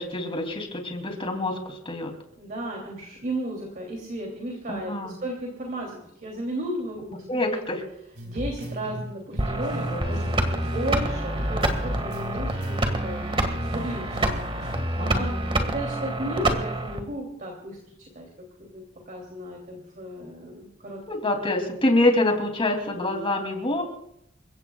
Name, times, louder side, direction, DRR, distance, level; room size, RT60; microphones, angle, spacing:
voice 1, 0.0-2.1 4.7-5.1 7.3-7.8 9.9-10.1 15.0-15.5 21.1-23.8, left 2 dB, 30° left, 4 dB, 3.0 m, -26 dB
voice 2, 2.4-7.2 7.5-7.6 8.2-18.3 18.6-21.0 22.9-23.2, right 1 dB, 45° right, 0 dB, 3.0 m, -34 dB
sound 1, 8.2-11.1 11.4-14.8, equal, 65° right, 4.3 m, -36 dB
sound 2, 9.4-17.0, right 1 dB, 25° right, 1.9 m, -27 dB
29.0 x 16.5 x 2.4 m, 0.76 s
head